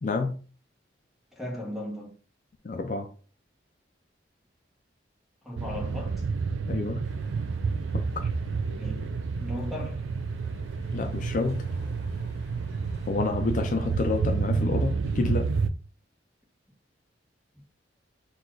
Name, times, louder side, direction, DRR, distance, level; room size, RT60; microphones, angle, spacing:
voice 1, 0.0-0.4 2.6-3.1 6.7-7.1 7.9-8.3 10.9-11.7 13.1-15.5, left 3 dB, 45° left, 0.4 m, -29 dB
voice 2, 1.3-2.2 5.4-6.2 8.8-10.1 14.5-14.7 17.5-17.6, left 1 dB, ahead, 1.0 m, -37 dB
sound 1, 5.6-15.7, right 4 dB, 85° right, 0.4 m, -30 dB
sound 2, 7.0-14.2, left 1 dB, 60° left, 1.1 m, -50 dB
4.1 x 2.4 x 4.6 m
head